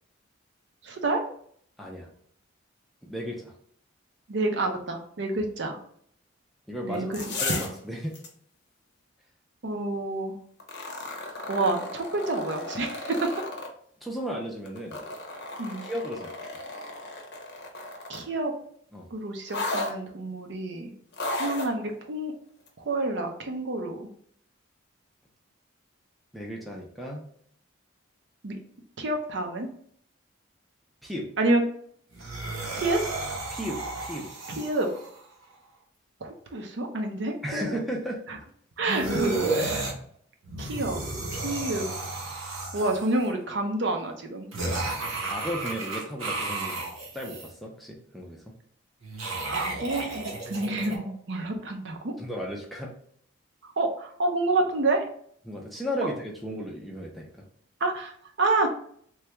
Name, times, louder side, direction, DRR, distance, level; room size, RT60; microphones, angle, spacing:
voice 1, 0.8-1.2 4.3-5.8 6.8-7.7 9.6-10.4 11.5-13.3 15.6-15.8 18.1-18.5 19.1-20.9 21.4-22.3 22.8-24.1 28.4-28.6 29.0-29.7 31.4-31.6 32.7-33.0 34.6-34.9 36.2-37.8 38.3-38.4 38.8-39.9 40.6-41.0 41.3-41.9 42.7-44.5 49.4-52.1 53.6-55.1 57.8-58.7, right 2 dB, 60° right, 3 dB, 0.5 m, -28 dB
voice 2, 1.8-2.1 3.0-3.5 6.7-8.1 14.0-15.0 15.8-16.5 18.9-19.1 26.3-27.3 31.0-31.3 33.5-34.3 37.4-38.2 45.3-46.8 47.1-48.4 51.0-51.2 52.2-52.9 55.4-57.3, equal, ahead, -1 dB, 0.4 m, -35 dB
sound 1, 6.9-7.8 8.1-8.3 10.6-13.7 14.6-18.3 19.5-19.9 21.1-21.7 22.7-22.8, left 2 dB, 50° left, 0.6 m, -34 dB
sound 2, 32.1-35.2 38.9-39.9 40.4-43.2 44.5-47.5 49.0-51.0, right 2 dB, 85° right, 0.9 m, -32 dB
3.3 x 2.3 x 2.9 m, 0.62 s
head